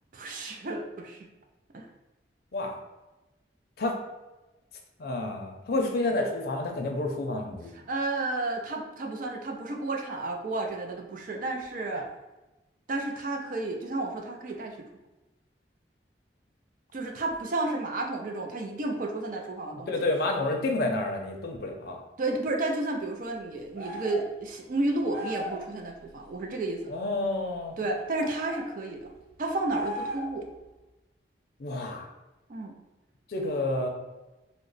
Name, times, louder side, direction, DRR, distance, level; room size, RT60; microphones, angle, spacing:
voice 1, 0.1-1.3 1.7-1.9 5.8-5.9 7.7-12.1 12.9-14.8 16.9-19.9 22.2-26.9 27.8-29.1 29.4-30.5 32.5-32.8, right 2 dB, 50° right, 3 dB, 0.4 m, -32 dB
voice 2, 5.0-7.7 19.9-22.0 26.9-27.7 31.6-32.0 33.3-33.9, left 2 dB, 60° left, 2 dB, 0.5 m, -29 dB
sound 1, 23.8-24.3 25.1-25.6 28.2-28.7 29.7-30.4, equal, 85° right, 1.1 m, -36 dB
3.0 x 2.1 x 3.9 m, 1.1 s
head